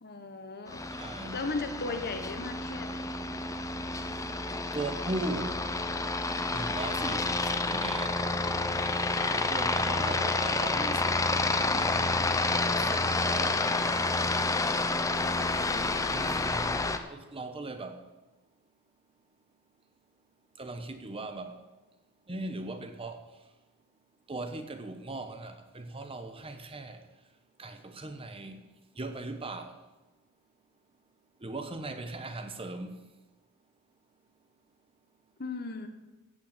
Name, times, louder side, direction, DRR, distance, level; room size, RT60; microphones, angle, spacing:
voice 1, 0.0-0.8 1.3-3.3 15.1-15.9 35.4-35.9, left 3 dB, 50° left, 1.3 m, -37 dB
Aircraft, 0.7-17.0, left 3 dB, 15° left, 0.7 m, -29 dB
voice 2, 1.0-1.4 4.7-5.6 6.5-8.2 9.3-12.2 12.7-13.6 16.1-16.8 17.1-18.0 20.6-21.6 22.3-23.2 24.3-27.0 27.6-28.6 29.0-29.8 31.4-33.0, right 2 dB, 25° right, 0.9 m, -38 dB
15.0 x 5.9 x 8.3 m
head